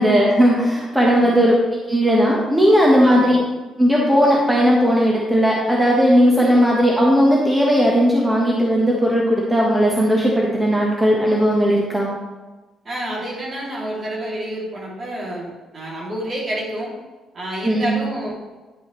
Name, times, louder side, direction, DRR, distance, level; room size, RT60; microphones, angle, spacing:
voice 1, 0.0-3.4 3.8-12.1 17.6-17.9, equal, 10° right, -3 dB, 1.3 m, -16 dB
voice 2, 3.0-3.4 6.3-6.6 12.8-16.9 17.3-18.3, right 1 dB, 40° right, -4 dB, 2.7 m, -29 dB
10.5 x 5.4 x 3.2 m, 1.2 s
cardioid pair, 90°, 0 cm